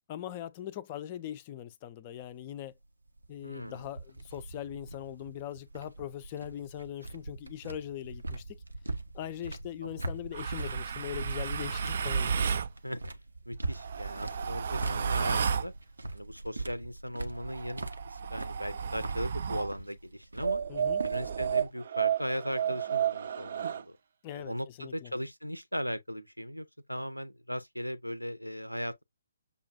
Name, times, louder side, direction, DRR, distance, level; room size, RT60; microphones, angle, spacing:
voice 1, 0.1-2.7 3.3-8.6 9.1-12.3 20.7-21.0 24.2-25.1, left 11 dB, 30° left, 0.4 m, -41 dB
sound 1, 2.2-21.5, right 2 dB, 75° right, 0.7 m, -42 dB
voice 2, 3.4-3.9 9.8-10.0 12.8-13.0 13.5-15.7 16.1-20.6 21.0-24.0 24.3-29.0, equal, 90° left, 0.5 m, -38 dB
sound 2, 10.3-12.7 13.7-15.7 17.4-19.7 20.4-23.8, right 7 dB, 50° right, 0.4 m, -32 dB
6.7 x 2.3 x 2.5 m
figure-of-eight pair, 135°, 0 cm